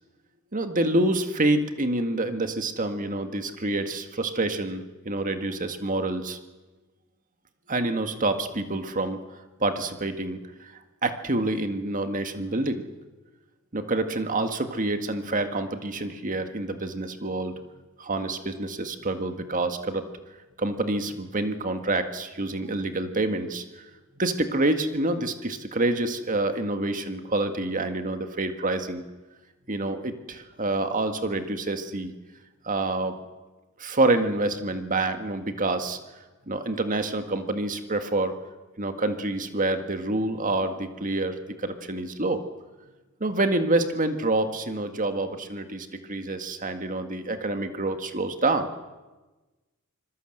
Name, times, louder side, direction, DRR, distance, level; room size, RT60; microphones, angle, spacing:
voice 1, 0.5-6.4 7.7-9.2 9.6-10.7 11.0-12.8 13.7-17.5 18.0-20.0 20.6-23.6 24.2-29.0 29.7-32.1 32.6-33.1 33.8-36.0 36.5-38.3 38.8-42.4 43.2-48.7, right 2 dB, 35° right, 7 dB, 1.8 m, -27 dB
26.0 x 21.0 x 7.9 m, 1.2 s
head